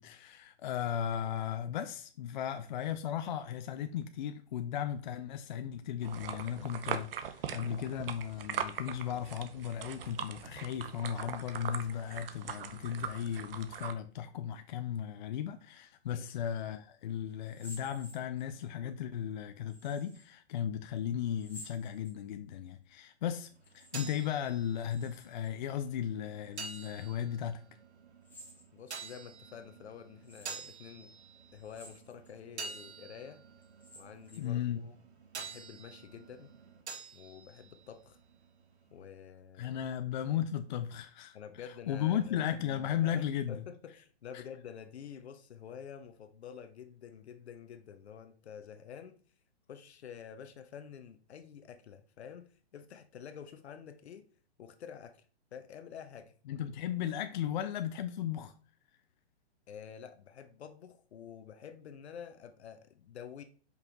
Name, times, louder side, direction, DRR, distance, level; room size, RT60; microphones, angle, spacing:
voice 1, 0.0-23.5 23.7-27.6 34.4-34.8 39.6-41.4 41.6-43.6 44.3-44.4 56.5-58.5, left 9 dB, 45° left, 0.5 m, -36 dB
sound 1, 6.0-13.9, right 8 dB, 60° right, 0.8 m, -41 dB
sound 2, 17.4-18.7 19.7-20.3 21.3-22.5 23.5-24.3 24.5-25.5 26.5-27.1 28.2-29.0 29.6-29.7 30.2-30.7 31.6-32.3 32.8-32.9 33.6-34.6, left 1 dB, 5° left, 1.9 m, -54 dB
sound 3, 23.5-39.1, right 5 dB, 75° right, 1.6 m, -49 dB
voice 2, 28.7-31.1 31.5-33.4 34.0-34.9 35.4-36.5 37.1-38.2 38.9-39.8 41.3-42.4 43.0-49.2 49.7-54.3 54.6-55.2 55.5-56.3 59.7-63.4, left 8 dB, 75° left, 0.8 m, -49 dB
5.4 x 4.6 x 3.9 m
hypercardioid pair, 150°, 33 cm